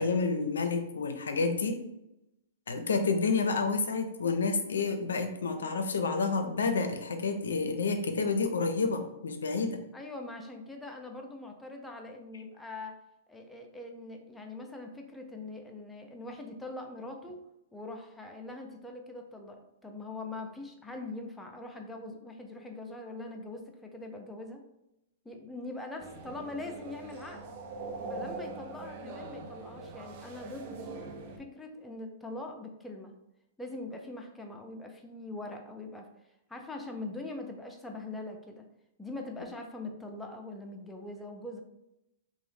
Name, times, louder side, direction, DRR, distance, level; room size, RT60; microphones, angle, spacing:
voice 1, 0.0-1.8 2.7-9.8, left 4 dB, 80° left, 6 dB, 0.4 m, -29 dB
voice 2, 9.9-12.9 13.3-17.4 17.7-24.6 25.2-27.5 28.0-30.9 31.4-33.1 33.6-36.1 36.5-38.6 39.0-41.6, left 2 dB, 5° left, 2 dB, 0.4 m, -42 dB
sound 1, 26.0-31.4, right 3 dB, 45° right, 0.5 m, -42 dB
2.7 x 2.0 x 3.2 m, 0.87 s
hypercardioid pair, 120°, 0 cm